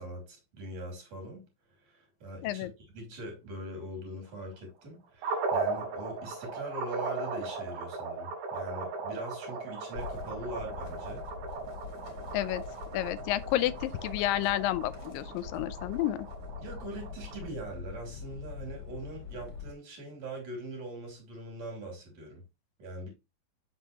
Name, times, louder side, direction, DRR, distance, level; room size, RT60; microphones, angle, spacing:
voice 1, 0.0-11.3 16.6-22.4 22.8-23.1, right 1 dB, 50° right, 3.8 m, -42 dB
sound 1, 5.2-17.5, right 4 dB, 85° right, 3.0 m, -37 dB
sound 2, 10.0-19.7, left 6 dB, 45° left, 2.3 m, -44 dB
voice 2, 12.9-16.3, left 14 dB, 85° left, 2.2 m, -30 dB
7.0 x 6.0 x 2.8 m
omnidirectional pair, 4.0 m